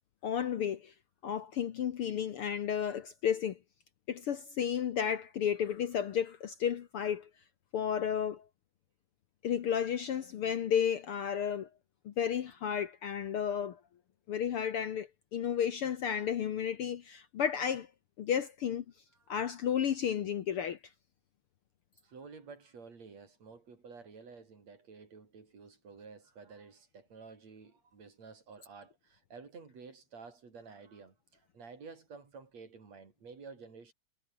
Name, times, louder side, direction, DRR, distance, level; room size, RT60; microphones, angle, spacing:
voice 1, 0.2-0.9 1.2-3.6 4.1-7.3 7.7-8.4 9.4-11.7 12.0-13.8 14.3-17.9 18.2-18.8 19.3-20.8, left 8 dB, 60° left, 1.7 m, -32 dB
voice 2, 22.0-33.9, right 5 dB, 60° right, 5.5 m, -51 dB
omnidirectional pair, 3.4 m